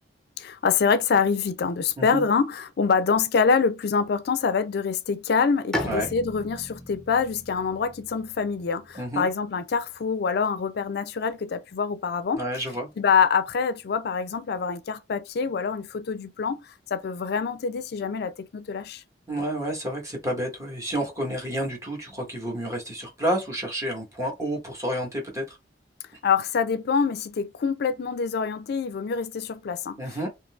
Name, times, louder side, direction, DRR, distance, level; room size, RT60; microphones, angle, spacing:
voice 1, 0.4-12.4 13.0-19.0 26.2-30.0, left 5 dB, 60° left, 0.4 m, -25 dB
Bowed string instrument, 5.7-9.3, left 1 dB, 5° left, 0.7 m, -36 dB
voice 2, 8.9-9.3 12.3-12.9 19.3-25.6 30.0-30.3, right 1 dB, 15° right, 1.1 m, -30 dB
3.7 x 2.7 x 2.3 m
head